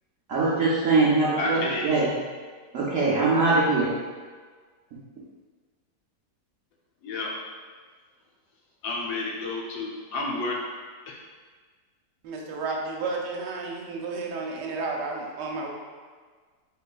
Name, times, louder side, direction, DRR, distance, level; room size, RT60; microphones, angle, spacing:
voice 1, 0.3-2.1 2.7-3.9, right 3 dB, 70° right, -7 dB, 0.8 m, -22 dB
voice 2, 1.4-2.0 7.0-7.3 8.8-10.6 11.1-11.2, left 2 dB, 75° left, -2 dB, 1.1 m, -30 dB
voice 3, 12.2-15.7, right 3 dB, 85° right, -1 dB, 1.2 m, -32 dB
4.2 x 3.2 x 2.3 m, 1.5 s
omnidirectional pair, 1.8 m